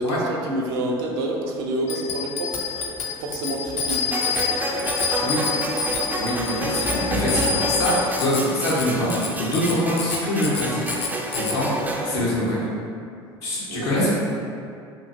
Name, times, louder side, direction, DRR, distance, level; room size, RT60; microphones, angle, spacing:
voice 1, 0.0-5.0 13.7-14.1, right 1 dB, 70° right, 0 dB, 0.5 m, -29 dB
Bicycle bell, 1.9-11.6, left 5 dB, 50° left, 0.4 m, -28 dB
sound 1, 4.1-12.1, right 1 dB, 10° right, 0.4 m, -29 dB
voice 2, 6.2-11.0 11.4-11.7 12.0-12.6 13.4-14.1, left 1 dB, 75° left, -7 dB, 0.9 m, -24 dB
3.0 x 2.4 x 2.7 m, 2.4 s
hypercardioid pair, 75°, 14 cm